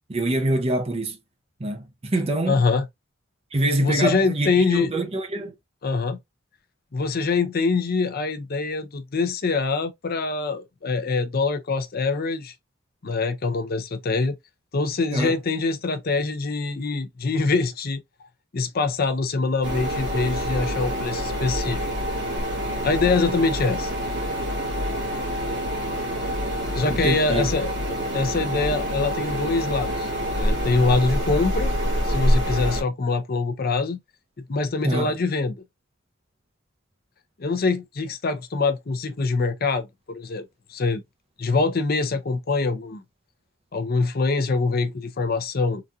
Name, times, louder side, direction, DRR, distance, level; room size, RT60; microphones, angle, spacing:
voice 1, 0.1-1.2 1.6-2.6 3.5-5.5 15.1-15.3 26.9-27.5 34.8-35.1, right 1 dB, 30° right, 0.7 m, -25 dB
voice 2, 2.5-2.9 3.8-4.9 5.8-6.2 6.9-12.5 13.0-14.4 14.7-18.0 18.5-21.8 22.8-23.9 26.7-30.1 30.4-31.7 32.0-34.0 34.5-35.6 37.4-40.4 40.7-41.0 41.4-43.0 43.7-45.8, left 3 dB, 50° left, 0.6 m, -24 dB
sound 1, 19.6-32.8, equal, 60° right, 1.7 m, -26 dB
3.9 x 2.6 x 2.3 m
head